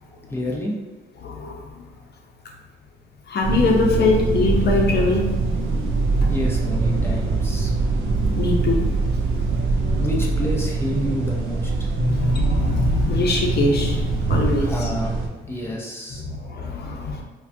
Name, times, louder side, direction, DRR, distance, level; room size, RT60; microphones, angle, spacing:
voice 1, 0.3-0.8 6.3-7.8 10.0-11.7 14.6-15.1 15.5-16.3, left 1 dB, 10° left, -2 dB, 0.8 m, -29 dB
voice 2, 1.2-1.8 3.3-5.2 8.4-9.2 9.9-10.0 11.9-14.9 16.2-17.2, left 3 dB, 55° left, 0 dB, 0.8 m, -23 dB
sound 1, 3.4-15.3, right 3 dB, 85° right, 0.6 m, -23 dB
4.7 x 2.3 x 2.7 m, 1.3 s
cardioid pair, 90°, 20 cm